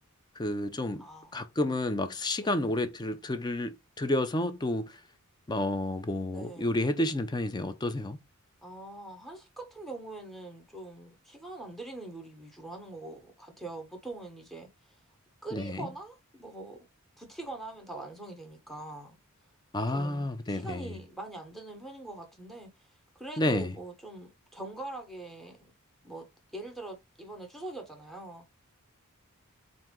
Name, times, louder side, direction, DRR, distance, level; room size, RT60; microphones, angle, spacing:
voice 1, 0.4-1.0 1.3-4.9 5.5-8.2 15.5-15.9 19.7-20.8 23.4-23.7, left 1 dB, 20° left, 0.5 m, -30 dB
voice 2, 1.0-1.4 2.4-2.8 6.3-6.8 8.6-15.0 15.4-16.9 17.2-19.2 19.9-25.7 26.0-26.3 26.5-28.4, right 2 dB, ahead, 1.0 m, -43 dB
4.3 x 2.7 x 3.7 m
head